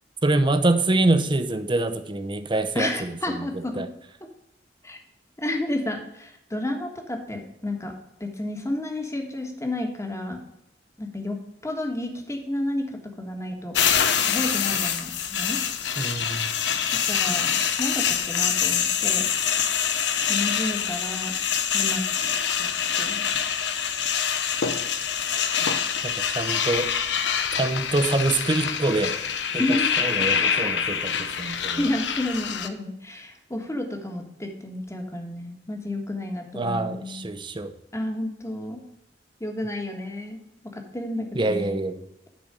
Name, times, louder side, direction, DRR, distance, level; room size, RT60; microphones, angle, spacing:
voice 1, 0.2-3.5 3.8-3.9 16.0-16.5 26.0-26.9 27.5-29.2 29.5-31.8 36.5-37.7 41.3-42.0, right 2 dB, 25° right, 9 dB, 0.7 m, -25 dB
voice 2, 2.7-3.9 4.8-5.0 5.4-7.9 8.2-10.4 11.0-11.4 11.6-13.8 14.3-15.6 16.9-19.3 20.3-21.3 21.7-22.0 22.6-22.7 23.0-23.3 29.6-29.9 31.6-37.3 37.9-38.8 39.4-40.4 40.9-41.8, left 1 dB, 15° left, 3 dB, 1.4 m, -31 dB
sound 1, 13.7-32.7, left 8 dB, 70° left, 0.8 m, -25 dB
10.5 x 4.3 x 6.5 m, 0.83 s
head